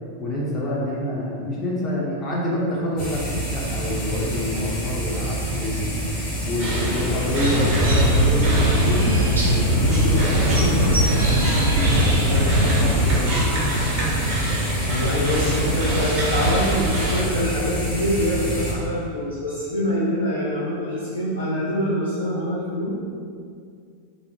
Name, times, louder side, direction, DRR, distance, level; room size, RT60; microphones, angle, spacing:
voice 1, 0.2-6.0 6.4-9.2 9.5-11.4 11.8-12.3 12.8-13.6, left 1 dB, 25° left, -6 dB, 0.6 m, -27 dB
sound 1, 3.0-18.7, right 1 dB, 45° left, 0.9 m, -28 dB
sound 2, 6.6-17.2, right 1 dB, 35° right, 0.7 m, -26 dB
sound 3, 7.4-13.2, equal, 75° right, 0.4 m, -20 dB
voice 2, 14.8-22.9, equal, 75° left, -9 dB, 0.4 m, -25 dB
2.5 x 2.0 x 2.9 m, 2.3 s
figure-of-eight pair, 90°, 0 cm